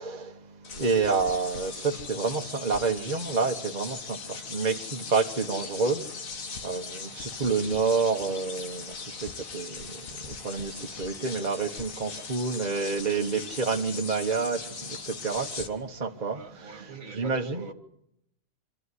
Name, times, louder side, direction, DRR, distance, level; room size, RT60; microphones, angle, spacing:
voice 1, 0.0-17.6, right 4 dB, 35° right, 1.3 m, -29 dB
sound 1, 0.6-15.7, left 5 dB, 85° left, 1.9 m, -39 dB
voice 2, 16.3-17.7, right 5 dB, 85° right, 2.5 m, -43 dB
26.5 x 13.0 x 9.8 m
omnidirectional pair, 1.4 m